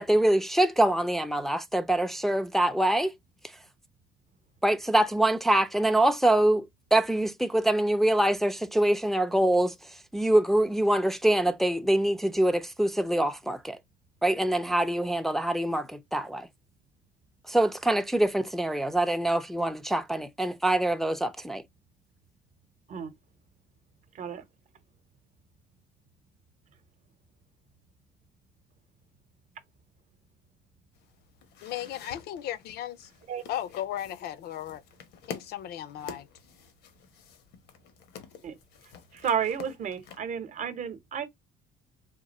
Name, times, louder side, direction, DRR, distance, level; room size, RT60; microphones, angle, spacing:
voice 1, 0.0-3.1 4.6-9.7 10.1-13.8 14.2-16.5 17.5-21.6, right 1 dB, ahead, 0.4 m, -24 dB
sound 1, 30.9-40.2, left 7 dB, 85° left, 0.9 m, -48 dB
voice 2, 31.6-33.1 33.5-34.8 35.3-36.3, left 11 dB, 70° left, 0.5 m, -36 dB
voice 3, 39.1-41.3, right 7 dB, 45° right, 0.8 m, -32 dB
3.7 x 2.5 x 4.1 m
cardioid pair, 110°, 17 cm